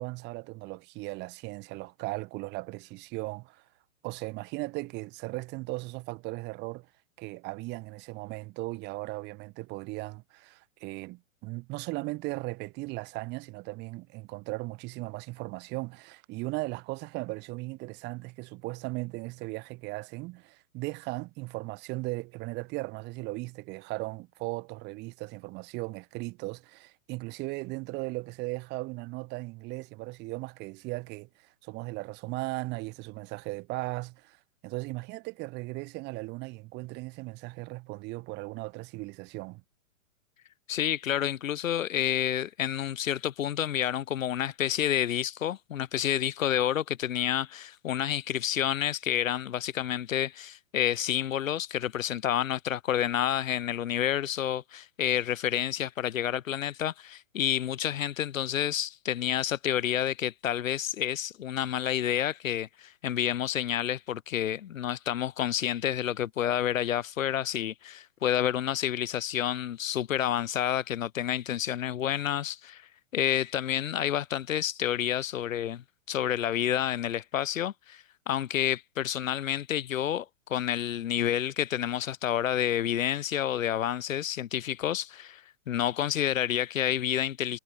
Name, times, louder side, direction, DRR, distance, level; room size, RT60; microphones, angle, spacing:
voice 1, 0.0-3.6 4.0-6.9 7.2-39.6, right 23 dB, 25° right, 2.7 m, -37 dB
voice 2, 40.7-87.6, left 10 dB, 65° left, 2.4 m, -29 dB
hypercardioid pair, 160°, 42 cm